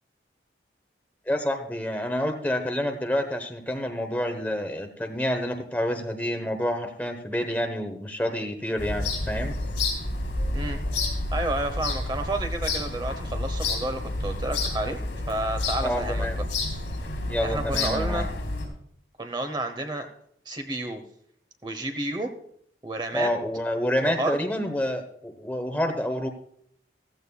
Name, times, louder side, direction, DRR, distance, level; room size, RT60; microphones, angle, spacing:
voice 1, 1.3-9.5 15.8-16.4 17.3-18.3 23.1-26.3, equal, 10° left, 4 dB, 1.0 m, -28 dB
sound 1, 8.8-18.7, left 2 dB, 85° left, 3.7 m, -29 dB
voice 2, 11.3-15.0 15.3-16.3 17.4-18.3 19.2-20.1 20.4-21.0 21.6-22.3 22.8-23.3 24.0-24.4, right 2 dB, 25° right, 5 dB, 0.9 m, -30 dB
15.0 x 14.5 x 2.3 m, 0.66 s
head